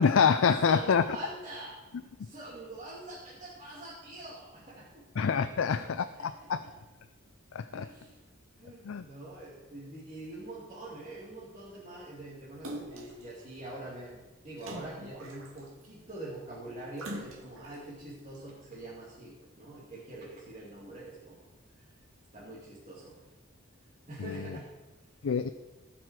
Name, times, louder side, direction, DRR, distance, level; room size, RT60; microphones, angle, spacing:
voice 1, 0.0-1.0 5.2-6.6 7.5-7.8 8.9-9.0 25.2-25.5, left 6 dB, 70° left, 11 dB, 0.4 m, -26 dB
voice 2, 0.6-5.0 5.5-6.7 7.7-8.2 8.6-21.4 22.3-23.2 24.1-24.7, right 2 dB, 35° right, -8 dB, 2.7 m, -45 dB
Splash splatter, 12.6-13.2 14.6-15.8 17.0-17.8 18.3-18.4, right 1 dB, 75° right, 2.0 m, -42 dB
17.5 x 5.9 x 4.8 m, 1.2 s
head